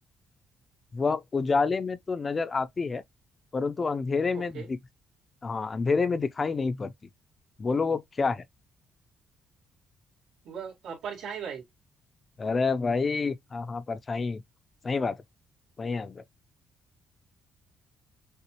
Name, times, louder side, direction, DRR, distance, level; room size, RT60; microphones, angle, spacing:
voice 1, 0.9-3.0 3.5-4.8 5.4-6.9 7.6-8.4 12.4-14.4 14.8-15.2 15.8-16.2, left 4 dB, 35° left, 0.5 m, -28 dB
voice 2, 4.3-4.7 10.4-11.6, right 7 dB, 85° right, 2.1 m, -38 dB
6.7 x 2.4 x 3.0 m
cardioid pair, 90°, 0 cm